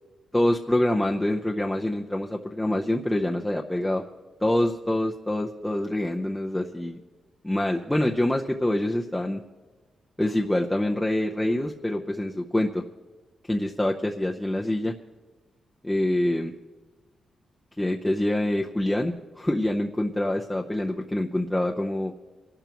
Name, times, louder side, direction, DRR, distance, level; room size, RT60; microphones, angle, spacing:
voice 1, 0.3-4.0 4.4-7.0 7.4-9.4 10.2-12.8 13.5-14.9 15.8-16.5 17.8-22.1, left 1 dB, 10° left, 0 dB, 0.7 m, -25 dB
25.0 x 12.0 x 3.0 m, 1.3 s
cardioid pair, 100°, 0 cm